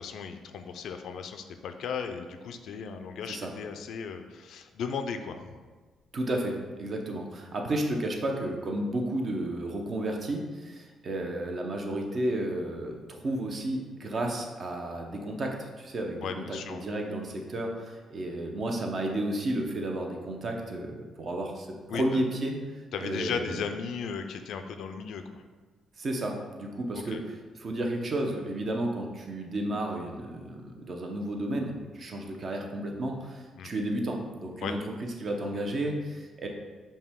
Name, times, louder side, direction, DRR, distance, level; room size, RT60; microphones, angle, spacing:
voice 1, 0.0-5.6 16.2-16.8 21.9-22.2 22.9-25.4 26.9-27.2 33.6-33.7 34.6-34.8, left 6 dB, 75° left, 7 dB, 0.3 m, -36 dB
voice 2, 6.1-22.6 23.0-23.5 26.0-34.8 35.2-36.5, right 1 dB, 45° right, 2 dB, 0.7 m, -32 dB
5.3 x 2.3 x 3.5 m, 1.4 s
cardioid pair, 90°, 0 cm